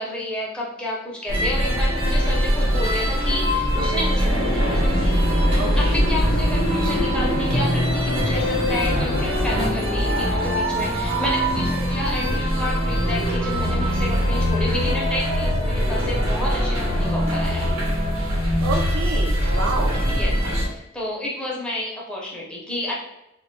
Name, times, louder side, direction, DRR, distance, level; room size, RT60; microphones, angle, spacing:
voice 1, 0.0-5.0 5.8-17.7 19.9-20.4 20.6-23.0, left 1 dB, 5° left, -4 dB, 0.6 m, -30 dB
sound 1, 1.3-20.7, equal, 85° right, 0.9 m, -22 dB
sound 2, 4.3-10.2, left 2 dB, 60° left, 0.5 m, -30 dB
voice 2, 5.5-6.0 11.5-11.6 18.6-20.0, right 3 dB, 65° right, 2 dB, 0.5 m, -28 dB
2.2 x 2.0 x 3.6 m, 0.90 s
head